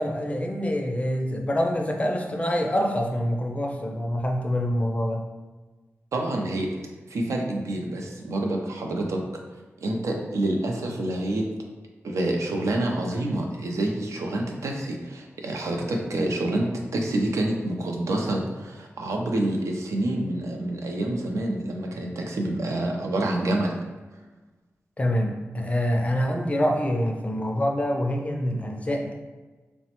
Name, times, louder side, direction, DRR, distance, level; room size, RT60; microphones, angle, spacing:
voice 1, 0.0-5.2 25.0-29.1, equal, 25° left, 2 dB, 0.4 m, -26 dB
voice 2, 6.1-6.7 7.1-9.2 9.8-11.4 12.0-23.8, right 1 dB, 80° right, 1 dB, 0.4 m, -27 dB
3.1 x 2.0 x 2.9 m, 1.3 s
wide cardioid pair, 85°, 5 cm